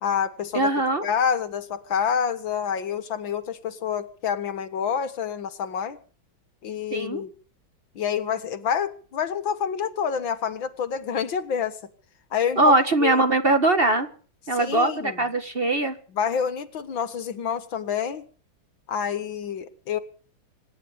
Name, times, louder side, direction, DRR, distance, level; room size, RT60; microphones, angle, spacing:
voice 1, 0.0-0.7 1.0-6.0 6.6-7.3 8.0-11.8 12.3-12.6 13.0-13.2 14.5-15.2 16.1-18.3 18.9-20.0, left 7 dB, 70° left, 12 dB, 2.2 m, -27 dB
voice 2, 0.5-1.1 6.9-7.2 12.6-14.1 14.5-16.0, right 2 dB, 30° right, 8 dB, 1.7 m, -21 dB
25.5 x 11.0 x 5.1 m, 0.43 s
omnidirectional pair, 2.2 m